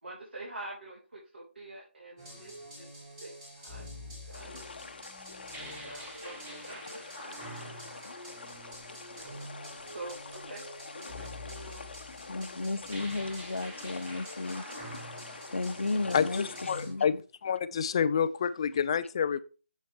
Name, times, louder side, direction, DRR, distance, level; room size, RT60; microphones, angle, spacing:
voice 1, 0.0-2.9 3.2-3.3 3.6-4.7 5.6-7.8 8.6-10.7 11.0-11.9, right 2 dB, 70° right, 3.5 m, -47 dB
sound 1, 2.2-16.9, equal, 15° right, 2.7 m, -46 dB
sound 2, 4.3-16.8, left 4 dB, 55° left, 0.9 m, -46 dB
voice 2, 12.3-14.7 15.0-15.2 15.5-17.2, left 3 dB, 90° left, 0.7 m, -34 dB
voice 3, 16.1-19.4, left 7 dB, 25° left, 0.4 m, -28 dB
7.6 x 6.2 x 3.4 m
figure-of-eight pair, 165°, 6 cm